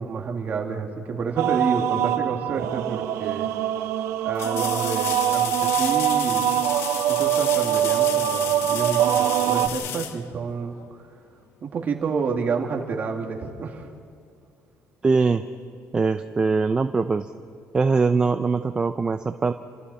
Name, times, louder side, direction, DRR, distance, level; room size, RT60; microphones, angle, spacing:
voice 1, 0.0-3.5 4.2-6.6 7.1-10.7 11.6-13.9, right 5 dB, 35° right, 1 dB, 2.3 m, -29 dB
sound 1, 1.4-9.7, right 12 dB, 80° right, 0.9 m, -23 dB
sound 2, 3.0-3.1 4.3-11.0 13.8-13.9, left 8 dB, 65° left, 1.2 m, -32 dB
voice 2, 15.0-15.4 15.9-17.3 17.7-19.5, right 4 dB, 20° right, 8 dB, 0.5 m, -22 dB
29.5 x 26.0 x 4.3 m, 2.3 s
cardioid pair, 155°, 5 cm